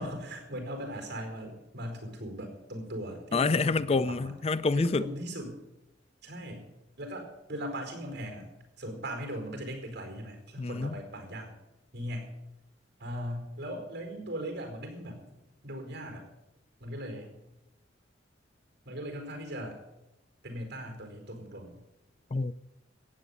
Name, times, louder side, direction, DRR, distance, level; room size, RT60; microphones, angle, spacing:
voice 1, 0.0-4.3 4.7-5.6 6.2-8.4 8.8-11.5 11.9-12.3 13.0-16.2 16.8-17.4 18.8-19.8 20.4-21.8, equal, 65° right, 4.7 m, -39 dB
voice 2, 3.3-5.0 10.6-10.9 22.3-22.5, left 4 dB, 35° left, 0.4 m, -27 dB
15.0 x 8.9 x 8.3 m
head